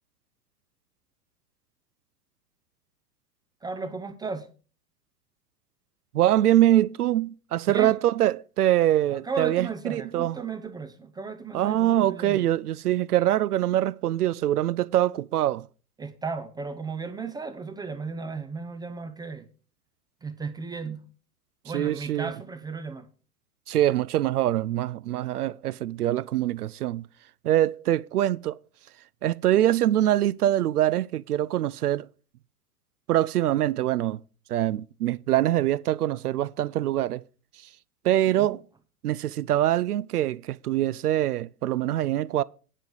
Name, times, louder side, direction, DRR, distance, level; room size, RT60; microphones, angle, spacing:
voice 1, 3.6-4.5 7.7-8.0 9.1-12.5 16.0-19.5 20.2-21.1 21.6-23.1 38.3-38.6, right 4 dB, 10° right, 0.5 m, -35 dB
voice 2, 6.1-10.4 11.5-15.7 21.7-22.3 23.7-27.1 27.4-28.6 29.2-32.1 33.1-34.2 34.5-37.2 38.0-38.6 39.0-42.4, right 13 dB, 75° right, 0.5 m, -24 dB
9.9 x 5.2 x 7.7 m
figure-of-eight pair, 95°, 47 cm